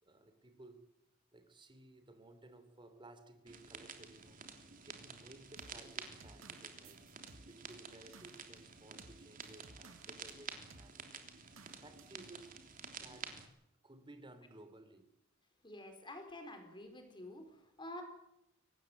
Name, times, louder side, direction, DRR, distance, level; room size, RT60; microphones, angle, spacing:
voice 1, 0.0-0.9 1.3-4.4 4.8-7.0 7.4-13.4 13.8-15.1, right 2 dB, 25° right, 3.0 m, -58 dB
sound 1, 3.5-13.5, right 6 dB, 45° right, 3.4 m, -51 dB
sound 2, 5.6-10.4 10.7-10.9 11.6-12.2, right 3 dB, 85° right, 1.9 m, -59 dB
voice 2, 15.6-18.0, left 1 dB, 25° left, 4.4 m, -49 dB
24.0 x 19.0 x 8.0 m
head